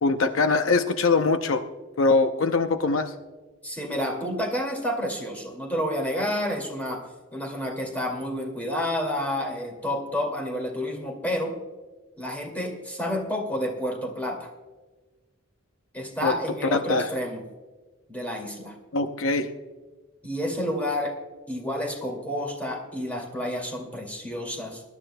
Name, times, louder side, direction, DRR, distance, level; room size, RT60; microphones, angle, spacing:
voice 1, 0.0-1.6 2.0-3.1 16.2-16.4 16.7-17.1 18.9-19.5, left 3 dB, 75° left, 8 dB, 0.7 m, -22 dB
voice 2, 3.6-7.0 7.3-11.5 12.2-14.5 15.9-17.4 18.1-18.8 20.2-21.1 21.5-24.8, left 1 dB, 10° left, 0 dB, 2.2 m, -30 dB
21.5 x 11.5 x 2.2 m, 1.3 s
head